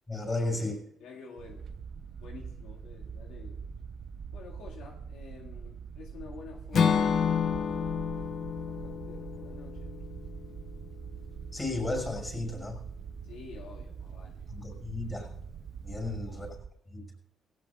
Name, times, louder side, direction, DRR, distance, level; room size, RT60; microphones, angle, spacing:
voice 1, 0.1-0.8 11.5-12.8 14.5-15.4 15.8-16.5 16.9-17.0, left 2 dB, 20° left, 3 dB, 5.9 m, -33 dB
voice 2, 1.0-1.7 2.2-3.6 4.3-7.6 8.2-10.0 13.2-14.4 15.9-16.4, left 5 dB, 90° left, -1 dB, 2.0 m, -49 dB
sound 1, 1.4-16.7, right 6 dB, 60° right, 0.7 m, -43 dB
Acoustic guitar / Strum, 6.7-10.8, left 7 dB, 60° left, 0.9 m, -29 dB
18.5 x 17.0 x 2.5 m, 0.78 s
cardioid pair, 90°, 0 cm